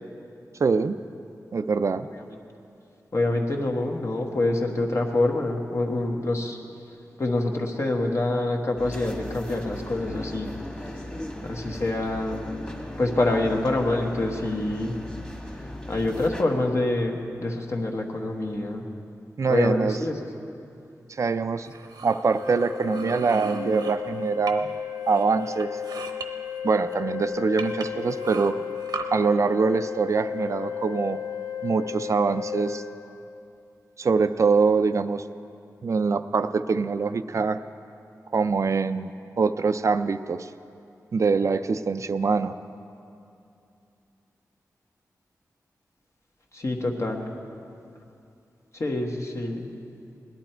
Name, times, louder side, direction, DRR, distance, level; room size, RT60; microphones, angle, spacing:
voice 1, 0.6-1.0 1.5-2.1 19.4-20.0 21.1-21.7 22.0-24.7 25.1-25.8 26.6-28.6 29.1-31.2 31.6-32.8 34.0-35.2 35.8-37.6 38.3-39.1 39.4-40.5 41.1-42.5, right 4 dB, 50° right, 11 dB, 0.4 m, -24 dB
voice 2, 3.1-6.6 7.2-10.5 11.4-12.4 13.0-14.9 15.9-18.8 19.5-20.2 46.5-47.3 48.7-49.7, left 2 dB, 50° left, 1 dB, 1.3 m, -26 dB
sound 1, 8.8-16.4, left 1 dB, 15° left, 1.7 m, -37 dB
sound 2, 21.6-24.8 25.1-26.3 26.9-27.0 27.6-29.0, right 5 dB, 90° right, 0.9 m, -38 dB
Organ, 22.3-33.4, left 9 dB, 80° left, 1.8 m, -34 dB
19.0 x 11.0 x 4.5 m, 2.6 s
wide cardioid pair, 100°, 6 cm